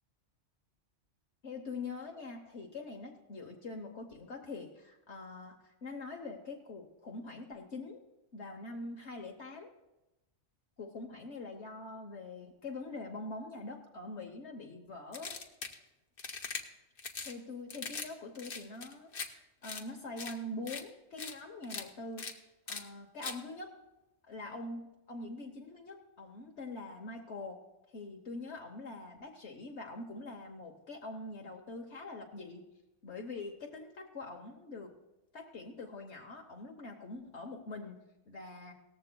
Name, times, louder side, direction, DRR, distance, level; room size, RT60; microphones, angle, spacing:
voice 1, 1.4-8.0 8.3-9.7 10.8-15.3 17.2-22.3 22.7-23.7 24.3-27.6 27.9-32.6 33.0-34.9 35.3-38.7, left 2 dB, 65° left, 2 dB, 1.3 m, -44 dB
sound 1, 15.1-15.8 16.2-16.6 17.0-17.3 17.7-18.1 18.3-19.3 19.6-19.8 20.2-20.3 20.7-20.8 21.2-21.3 21.6-21.8 22.2-22.3 22.7-22.8 23.2-23.4, left 4 dB, 50° left, 1.2 m, -40 dB
18.0 x 14.5 x 2.2 m, 0.99 s
omnidirectional pair, 1.2 m